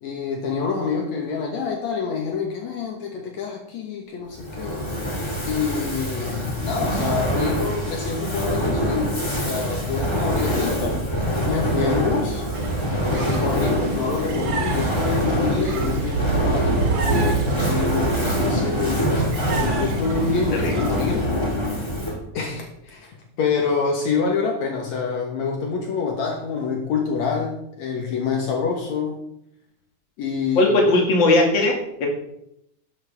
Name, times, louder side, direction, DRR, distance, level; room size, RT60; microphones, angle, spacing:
voice 1, 0.0-4.9 5.5-10.8 11.5-12.4 13.1-21.3 22.3-29.2 30.2-30.8, left 5 dB, 65° left, 1 dB, 2.6 m, -27 dB
Fire, 4.3-22.3, equal, 10° left, 1.6 m, -25 dB
sound 1, 12.5-21.3, right 4 dB, 55° right, 1.4 m, -28 dB
voice 2, 30.6-31.7 32.0-32.1, left 2 dB, 40° left, 0 dB, 2.6 m, -18 dB
12.0 x 10.5 x 3.5 m, 0.77 s
omnidirectional pair, 3.5 m